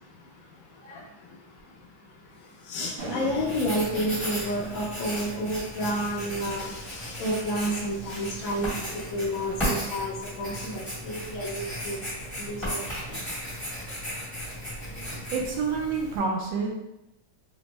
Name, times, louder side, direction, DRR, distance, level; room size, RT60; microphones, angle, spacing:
voice 1, 2.7-8.7 9.1-12.0 12.5-12.8, equal, 75° left, -1 dB, 0.7 m, -30 dB
sound 1, 3.0-4.5 6.0-10.3 11.1-11.4 11.7-13.4, right 1 dB, 50° right, 0.9 m, -44 dB
Writing, 3.3-16.2, equal, 10° left, 0.8 m, -35 dB
voice 2, 15.3-16.7, right 5 dB, 75° right, -1 dB, 1.2 m, -28 dB
3.5 x 2.1 x 2.9 m, 0.88 s
omnidirectional pair, 2.1 m